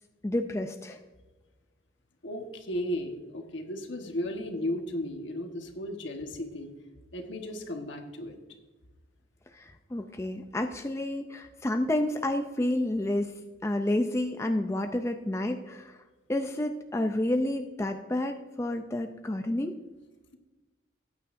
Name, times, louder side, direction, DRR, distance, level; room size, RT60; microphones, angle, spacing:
voice 1, 0.2-1.0 9.5-13.3 13.6-16.0 16.3-19.7, left 1 dB, 15° left, 6 dB, 0.4 m, -30 dB
voice 2, 2.2-6.7 7.1-8.4, left 1 dB, 75° left, 4 dB, 1.3 m, -35 dB
14.0 x 9.3 x 2.6 m, 1.2 s
head